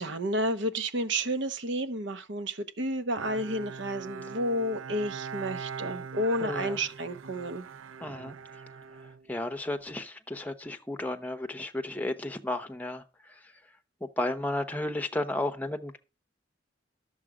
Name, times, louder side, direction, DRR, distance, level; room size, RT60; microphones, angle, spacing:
voice 1, 0.0-7.7, equal, 60° right, 0.9 m, -31 dB
Bowed string instrument, 3.2-9.8, right 6 dB, 85° right, 0.5 m, -41 dB
voice 2, 6.4-6.8 8.0-8.4 9.3-13.0 14.0-16.0, left 1 dB, 10° left, 0.9 m, -33 dB
11.5 x 7.3 x 4.9 m
head